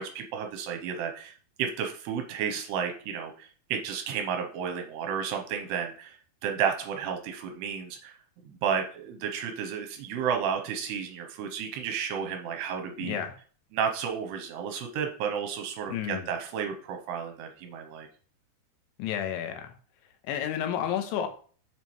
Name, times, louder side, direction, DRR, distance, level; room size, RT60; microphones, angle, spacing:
voice 1, 0.0-8.2 8.5-13.2 13.7-18.1, right 7 dB, 80° right, 4 dB, 2.7 m, -32 dB
voice 2, 13.0-13.4 15.9-16.3 19.0-19.7 20.2-21.3, left 9 dB, 90° left, 6 dB, 3.3 m, -31 dB
7.3 x 6.7 x 3.1 m, 0.43 s
omnidirectional pair, 5.2 m